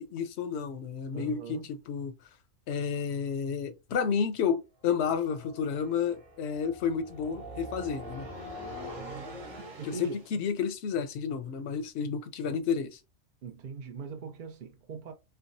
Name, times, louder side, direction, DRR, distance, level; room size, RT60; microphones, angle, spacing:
voice 1, 0.0-1.6 1.9-2.1 2.7-8.3 9.8-13.0, left 6 dB, 65° left, 0.8 m, -31 dB
voice 2, 1.1-1.7 9.6-10.2 13.4-15.1, right 5 dB, 55° right, 0.5 m, -41 dB
sound 1, 4.8-10.3, equal, 75° right, 2.0 m, -43 dB
4.6 x 2.0 x 2.5 m
omnidirectional pair, 1.4 m